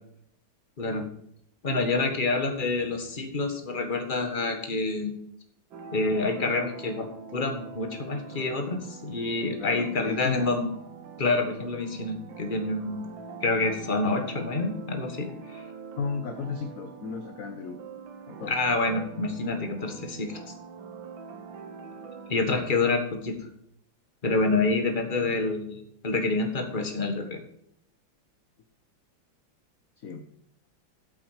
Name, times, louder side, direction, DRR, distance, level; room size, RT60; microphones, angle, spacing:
voice 1, 1.6-5.1 5.9-10.7 11.2-13.0 13.4-15.6 18.5-20.4 22.3-23.4 24.2-27.4, left 3 dB, 25° left, 6 dB, 1.5 m, -27 dB
sound 1, 5.7-22.9, right 5 dB, 75° right, 1.9 m, -44 dB
voice 2, 9.6-10.5 16.0-17.8 18.3-18.5 30.0-30.2, left 5 dB, 55° left, 6 dB, 1.1 m, -34 dB
8.5 x 8.1 x 5.0 m, 0.69 s
omnidirectional pair, 2.2 m